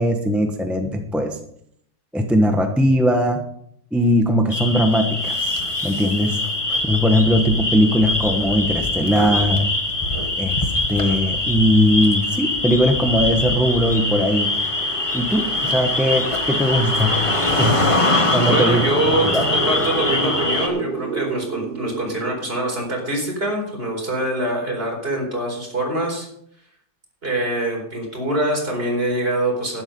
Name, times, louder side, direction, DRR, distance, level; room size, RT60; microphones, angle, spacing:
voice 1, 0.0-1.4 2.1-3.4 3.9-6.4 6.9-9.7 10.4-14.5 15.1-17.2 17.6-17.8 18.3-18.8 19.3-19.4, equal, ahead, 4 dB, 0.6 m, -19 dB
sound 1, 4.5-20.7, left 2 dB, 20° left, 1.3 m, -23 dB
sound 2, 12.6-23.1, right 6 dB, 65° right, 0.5 m, -32 dB
voice 2, 18.3-26.3 27.2-29.8, right 1 dB, 30° right, 0 dB, 4.6 m, -24 dB
12.0 x 10.5 x 5.3 m, 0.69 s
omnidirectional pair, 2.1 m